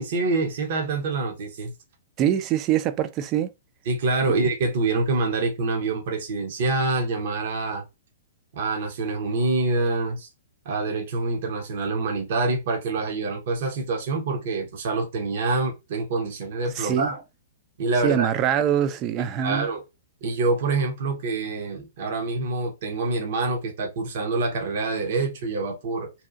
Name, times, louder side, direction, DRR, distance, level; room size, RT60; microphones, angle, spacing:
voice 1, 0.0-1.7 3.9-7.8 8.5-10.3 10.6-17.2 17.8-18.3 19.4-19.8 20.2-26.1, right 3 dB, 55° right, 0.8 m, -26 dB
voice 2, 2.2-3.5 4.2-4.3 16.8-17.1 18.0-19.7, right 10 dB, 30° right, 0.4 m, -24 dB
2.8 x 2.4 x 2.4 m
figure-of-eight pair, 115°, 0 cm